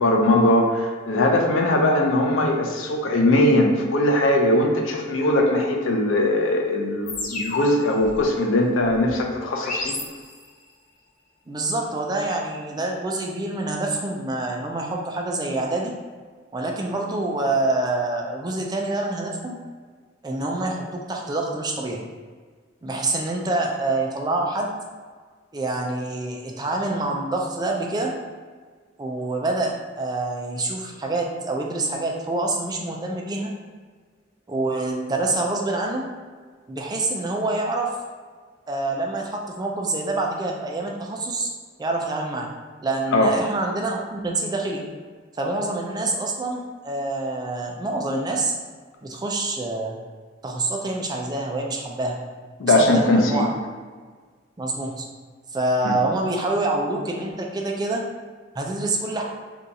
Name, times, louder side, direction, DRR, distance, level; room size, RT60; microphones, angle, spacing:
voice 1, 0.0-10.0 43.1-43.3 52.6-53.5 55.8-56.0, left 1 dB, 85° left, 1 dB, 0.5 m, -20 dB
sound 1, 7.1-10.7, left 2 dB, 40° left, 0.6 m, -33 dB
voice 2, 11.5-15.9 16.5-19.6 20.2-22.0 22.8-24.7 25.5-28.1 29.0-33.5 34.5-36.0 36.7-37.9 38.7-41.5 41.8-42.5 42.8-44.8 45.4-48.5 49.0-50.0 50.4-52.2 52.6-53.5 54.6-55.1 55.5-58.0 58.6-59.2, right 2 dB, 20° right, 0 dB, 0.3 m, -26 dB
2.7 x 2.4 x 3.9 m, 1.5 s
head